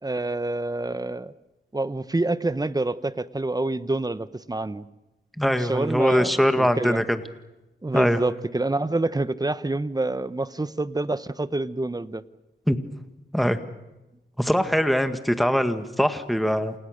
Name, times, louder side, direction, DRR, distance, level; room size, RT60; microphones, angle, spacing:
voice 1, 0.0-1.3 1.7-4.8 5.6-7.0 7.8-12.2, right 2 dB, 20° right, 14 dB, 1.0 m, -27 dB
voice 2, 5.4-7.2 7.9-8.2 12.7-12.8 13.3-13.6 14.4-16.7, equal, ahead, 8 dB, 1.9 m, -22 dB
28.5 x 28.0 x 6.6 m, 1.0 s
cardioid pair, 75°, 20 cm